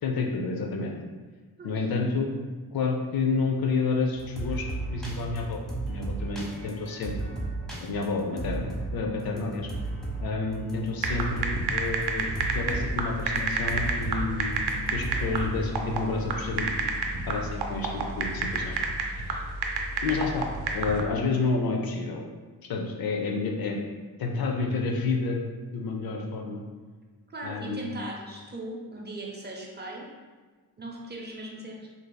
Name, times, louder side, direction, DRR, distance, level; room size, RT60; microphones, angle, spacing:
voice 1, 0.0-1.0 1.6-2.3 2.7-5.6 5.9-7.1 7.8-9.7 10.2-14.6 14.9-16.9 17.3-18.8 19.1-19.5 20.0-20.5 20.7-22.2 22.7-23.8 24.2-25.4 25.7-26.6 27.4-27.9, left 4 dB, 60° left, 1 dB, 0.6 m, -29 dB
sound 1, 4.1-11.6 11.9-12.9 13.2-13.4 13.7-15.5, right 2 dB, ahead, 0.8 m, -34 dB
sound 2, 11.0-21.0, right 4 dB, 70° right, 0.6 m, -30 dB
voice 2, 27.3-30.1 30.8-31.9, right 1 dB, 25° right, -1 dB, 0.6 m, -39 dB
4.5 x 2.7 x 2.2 m, 1.4 s
cardioid pair, 80°, 41 cm